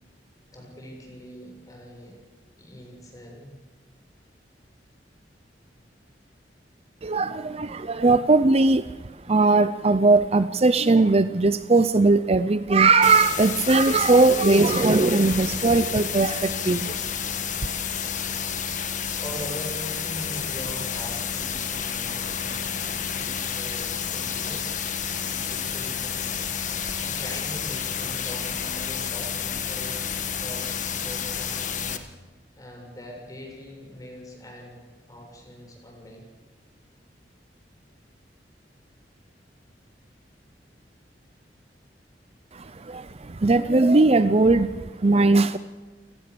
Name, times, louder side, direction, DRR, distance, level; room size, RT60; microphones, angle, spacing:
voice 1, 0.5-2.2 2.6-3.6 19.2-26.3 27.0-32.1 32.5-36.3, equal, 20° left, 0 dB, 7.5 m, -42 dB
voice 2, 7.0-17.1 42.5-45.6, right 3 dB, 35° right, 13 dB, 0.6 m, -19 dB
sound 1, 13.0-32.0, left 7 dB, 45° left, 1.7 m, -30 dB
29.0 x 18.5 x 7.0 m, 1.3 s
head